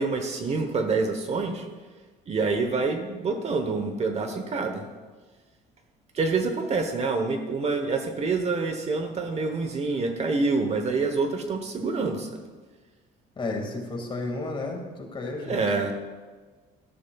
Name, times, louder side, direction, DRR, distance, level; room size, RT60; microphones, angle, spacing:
voice 1, 0.0-1.7 2.3-4.8 6.1-12.4 15.4-15.9, right 4 dB, 40° right, 6 dB, 1.0 m, -27 dB
voice 2, 13.4-15.6, left 2 dB, 30° left, 2 dB, 2.0 m, -32 dB
12.5 x 12.5 x 2.3 m, 1.4 s
cardioid pair, 110°, 17 cm